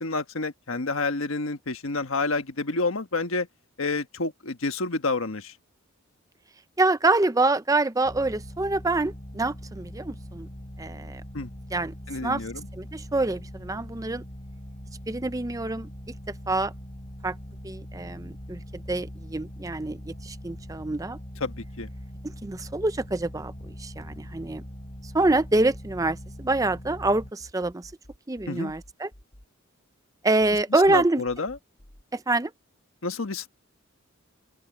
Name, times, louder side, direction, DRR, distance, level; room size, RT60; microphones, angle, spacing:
voice 1, 0.0-3.5 3.8-5.5 11.3-11.5 12.1-12.7 21.4-21.9 28.5-28.7 30.7-31.6 33.0-33.5, left 3 dB, 80° left, 1.4 m, -29 dB
voice 2, 6.8-10.5 10.8-11.2 11.7-11.9 12.2-12.4 12.8-14.2 15.1-15.9 16.5-16.7 17.2-17.3 17.6-21.2 22.4-23.5 23.8-24.6 25.1-27.9 28.3-29.1 30.2-31.2 32.1-32.5, right 2 dB, 15° right, 0.5 m, -26 dB
sound 1, 8.0-27.3, equal, 35° left, 3.7 m, -42 dB
sound 2, 18.4-20.2 20.5-27.1 27.4-30.1 30.4-32.0, equal, 50° left, 4.3 m, -52 dB
open air
head